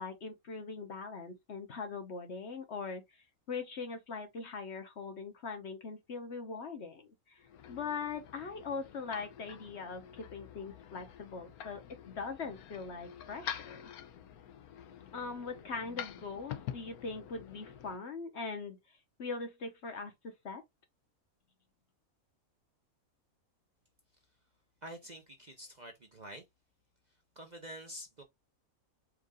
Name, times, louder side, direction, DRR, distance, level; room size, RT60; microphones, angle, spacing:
voice 1, 0.0-3.0 3.5-7.4 7.7-13.8 15.1-18.8 19.2-20.6, left 4 dB, 50° left, 1.1 m, -41 dB
sound 1, 7.4-18.0, left 10 dB, 85° left, 1.1 m, -47 dB
voice 2, 24.8-26.4 27.4-28.2, equal, 35° right, 0.8 m, -47 dB
4.6 x 2.6 x 3.6 m
omnidirectional pair, 1.5 m